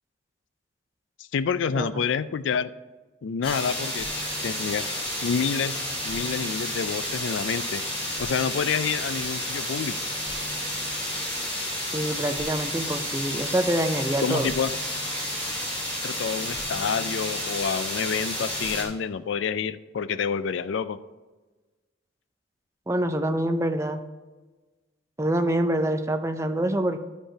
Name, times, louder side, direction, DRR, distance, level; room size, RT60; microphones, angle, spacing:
voice 1, 1.3-2.7 3.2-4.1 4.4-4.8 5.2-7.8 8.2-10.0 14.2-14.7 16.0-21.0, left 6 dB, 75° left, 14 dB, 0.4 m, -28 dB
sound 1, 3.4-18.8, left 1 dB, 30° left, 2.6 m, -31 dB
voice 2, 11.9-14.5 22.9-24.0 25.2-27.0, right 1 dB, 15° right, 7 dB, 0.5 m, -26 dB
12.0 x 5.2 x 4.9 m, 1.2 s
head